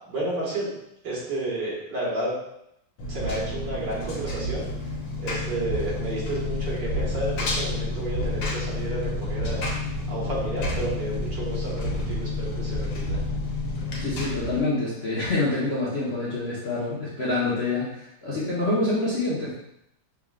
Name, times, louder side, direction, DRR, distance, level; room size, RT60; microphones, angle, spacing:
voice 1, 0.1-0.7 1.0-2.3 3.1-4.7 5.2-9.6 10.1-13.2, right 2 dB, 65° right, -6 dB, 2.2 m, -31 dB
Engine, 3.0-14.6, left 2 dB, 85° left, 1.7 m, -29 dB
voice 2, 14.0-19.5, left 2 dB, 40° left, -8 dB, 1.0 m, -26 dB
5.9 x 3.5 x 2.4 m, 0.79 s
omnidirectional pair, 2.0 m